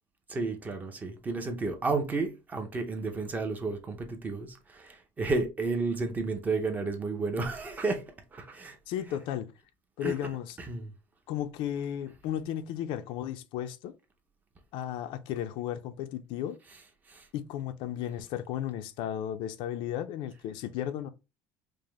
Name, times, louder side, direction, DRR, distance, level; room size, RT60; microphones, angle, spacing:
voice 1, 0.3-8.0 8.3-9.1 10.0-10.2 10.6-10.9 16.7-17.3, right 3 dB, 20° right, 0.6 m, -32 dB
voice 2, 8.9-9.5 10.0-10.6 11.3-14.0 14.7-16.6 17.3-21.1, left 10 dB, 65° left, 0.4 m, -34 dB
5.0 x 2.1 x 3.1 m
cardioid pair, 165°, 9 cm